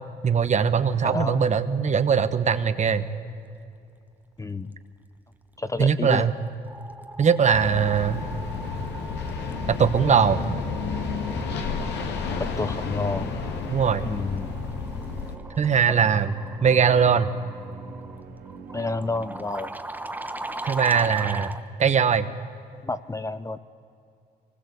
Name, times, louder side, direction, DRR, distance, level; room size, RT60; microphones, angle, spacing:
voice 1, 0.2-3.1 5.8-6.3 7.2-8.2 9.7-10.4 13.7-14.1 15.6-16.3 16.6-17.3 20.6-22.3, right 6 dB, 40° right, 11 dB, 1.3 m, -21 dB
voice 2, 1.0-1.4 4.4-4.7 5.6-6.3 12.4-13.3 14.1-14.5 18.7-19.7 22.8-23.6, left 3 dB, 20° left, 12 dB, 0.8 m, -29 dB
sound 1, 6.4-21.6, right 2 dB, 10° right, 1.3 m, -40 dB
sound 2, 7.5-15.4, left 5 dB, 80° left, 2.3 m, -31 dB
Musical instrument, 11.3-19.8, right 5 dB, 65° right, 3.9 m, -45 dB
24.0 x 20.0 x 8.3 m, 2.5 s
cardioid pair, 90°, 17 cm